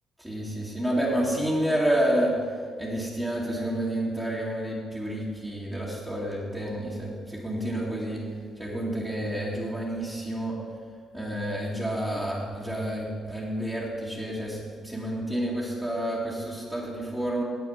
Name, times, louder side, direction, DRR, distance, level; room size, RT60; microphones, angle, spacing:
voice 1, 0.2-2.4 2.8-8.2 8.6-10.6 11.1-17.4, right 1 dB, 10° right, -7 dB, 2.6 m, -29 dB
9.4 x 8.4 x 7.3 m, 2.1 s
cardioid pair, 90°, 0 cm